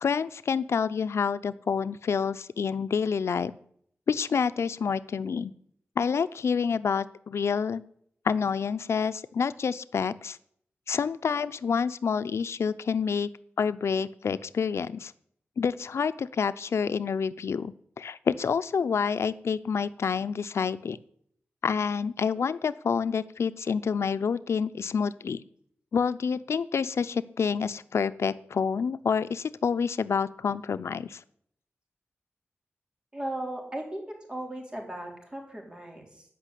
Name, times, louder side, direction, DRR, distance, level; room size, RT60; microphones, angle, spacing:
voice 1, 0.0-3.5 4.1-5.5 6.0-7.8 8.2-10.4 10.9-13.3 13.6-15.1 15.6-21.0 21.6-25.4 25.9-31.2, left 6 dB, 90° left, 13 dB, 0.5 m, -28 dB
voice 2, 33.1-36.2, right 1 dB, 20° right, 1 dB, 3.8 m, -37 dB
14.5 x 5.9 x 9.9 m, 0.67 s
wide cardioid pair, 125°, 4 cm